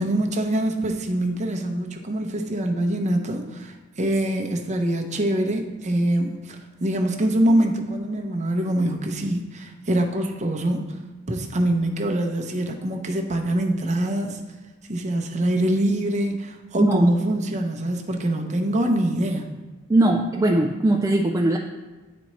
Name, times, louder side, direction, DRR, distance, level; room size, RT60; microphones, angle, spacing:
voice 1, 0.0-11.0 11.3-14.4 14.9-19.5, right 1 dB, 35° right, 3 dB, 0.7 m, -24 dB
voice 2, 16.8-17.1 19.9-21.6, right 1 dB, 15° right, 0 dB, 0.3 m, -20 dB
9.9 x 4.2 x 3.1 m, 1.2 s
head